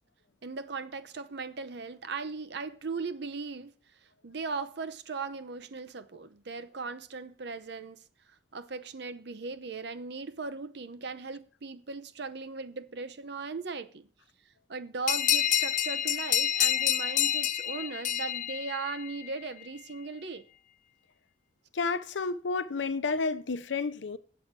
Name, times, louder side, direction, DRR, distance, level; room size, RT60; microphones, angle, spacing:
voice 1, 0.4-3.7 4.2-8.0 8.5-14.1 14.7-20.4, right 4 dB, 65° right, 0.7 m, -38 dB
sound 1, 15.1-19.3, left 11 dB, 45° left, 0.4 m, -28 dB
voice 2, 21.7-24.2, left 4 dB, 85° left, 0.7 m, -31 dB
7.9 x 7.9 x 6.0 m
head